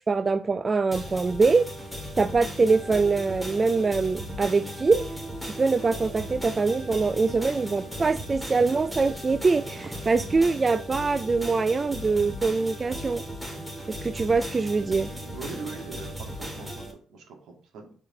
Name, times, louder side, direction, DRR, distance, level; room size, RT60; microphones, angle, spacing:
voice 1, 0.1-1.7 2.2-5.1 5.4-13.2 13.9-15.1, right 4 dB, 30° right, 0.3 m, -24 dB
sound 1, 0.9-16.9, equal, 5° right, 2.0 m, -37 dB
voice 2, 15.3-17.9, right 4 dB, 80° right, 2.1 m, -41 dB
4.9 x 4.7 x 5.2 m
cardioid pair, 90°, 0 cm